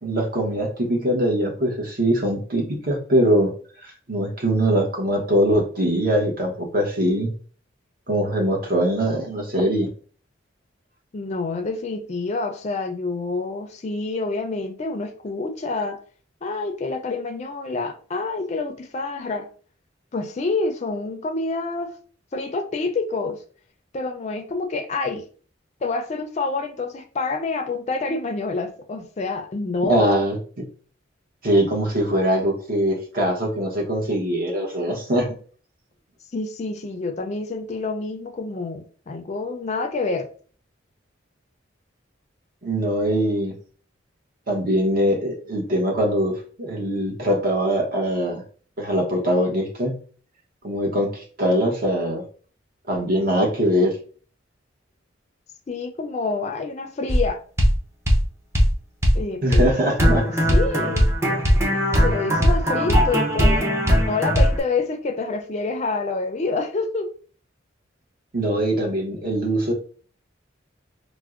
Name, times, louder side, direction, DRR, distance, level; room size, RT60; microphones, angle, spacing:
voice 1, 0.0-3.5 3.8-7.3 8.1-9.9 29.8-30.4 31.4-35.3 42.6-43.5 44.5-48.4 48.8-49.9 50.6-52.2 52.9-54.0 59.4-60.2 68.3-69.7, right 1 dB, 50° right, 0.9 m, -22 dB
voice 2, 11.1-16.0 16.4-19.5 20.1-21.9 22.3-23.4 23.9-25.2 25.8-30.1 36.3-40.3 55.7-57.4 59.1-59.7 60.2-61.1 62.0-67.1, left 3 dB, 35° left, 0.4 m, -27 dB
sound 1, 57.1-57.3 57.6-57.8 58.1-58.2 58.5-58.7 59.0-59.2 59.5-59.7 60.0-64.6, equal, 15° right, 0.5 m, -18 dB
4.3 x 2.1 x 2.4 m
head